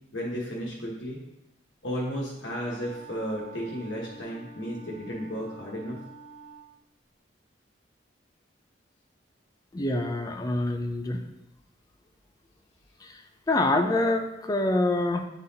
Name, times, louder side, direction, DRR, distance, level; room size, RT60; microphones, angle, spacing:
voice 1, 0.1-1.2 1.8-6.0, equal, 85° left, -4 dB, 1.2 m, -33 dB
Wind instrument woodwind instrument, 2.3-6.7, right 3 dB, 45° left, 1.1 m, -48 dB
voice 2, 9.7-11.2 13.0-13.2 13.5-15.3, left 2 dB, 20° left, 5 dB, 0.4 m, -26 dB
9.1 x 4.0 x 2.8 m, 0.89 s
head